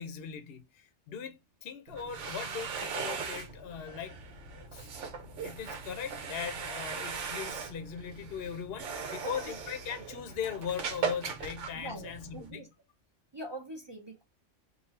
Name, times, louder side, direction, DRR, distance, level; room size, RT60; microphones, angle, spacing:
voice 1, 0.0-4.2 4.5-4.9 5.4-12.7, left 7 dB, 60° left, 0.9 m, -39 dB
sound 1, 1.9-12.5, right 5 dB, 75° right, 1.1 m, -39 dB
voice 2, 8.9-9.5 11.7-12.7 13.3-14.2, right 1 dB, 25° right, 0.6 m, -44 dB
3.9 x 2.3 x 4.1 m
omnidirectional pair, 1.3 m